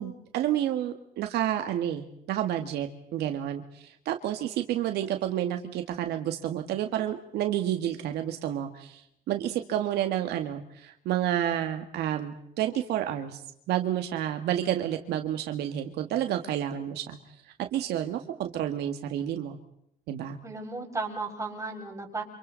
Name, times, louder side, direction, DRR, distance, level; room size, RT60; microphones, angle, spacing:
voice 1, 0.0-13.4 13.7-17.2 17.6-19.6 20.1-20.4, right 11 dB, 80° right, 6 dB, 1.9 m, -30 dB
voice 2, 20.4-22.2, right 3 dB, 20° right, 0 dB, 6.7 m, -34 dB
30.0 x 27.5 x 4.1 m, 0.76 s
cardioid pair, 110°, 17 cm